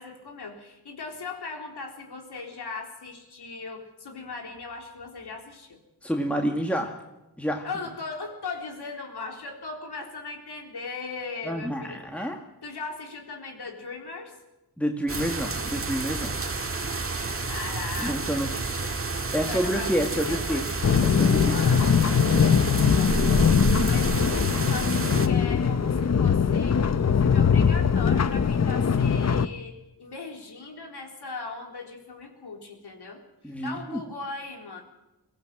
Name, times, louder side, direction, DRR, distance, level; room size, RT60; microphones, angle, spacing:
voice 1, 0.0-5.8 7.6-12.3 12.6-14.4 17.4-19.0 19.3-20.7 21.5-34.8, left 4 dB, 75° left, 3 dB, 4.0 m, -39 dB
voice 2, 6.0-6.9 7.4-7.7 11.5-12.4 14.8-16.3 18.0-18.5 19.3-20.6 21.0-21.6 33.4-34.0, equal, 5° left, 2 dB, 1.9 m, -28 dB
sound 1, 15.1-25.3, right 3 dB, 35° right, 1.8 m, -30 dB
sound 2, 20.8-29.5, left 6 dB, 40° left, 0.8 m, -21 dB
23.0 x 16.5 x 7.8 m, 0.98 s
wide cardioid pair, 90°, 40 cm